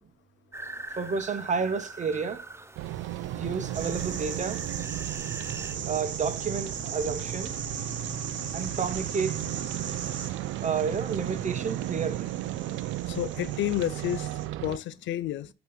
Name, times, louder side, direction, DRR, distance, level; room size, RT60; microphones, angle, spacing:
sound 1, 0.5-5.8, right 2 dB, 15° right, 0.6 m, -43 dB
voice 1, 1.0-2.4 3.3-4.6 5.9-7.5 8.5-9.4 10.6-12.3, right 5 dB, 35° right, 1.0 m, -30 dB
sound 2, 2.8-14.8, right 14 dB, 85° right, 0.4 m, -35 dB
sound 3, 3.7-14.5, right 7 dB, 65° right, 1.3 m, -38 dB
voice 2, 13.1-14.3 14.6-15.5, left 12 dB, 70° left, 0.5 m, -30 dB
8.3 x 3.0 x 5.5 m
cardioid pair, 90°, 20 cm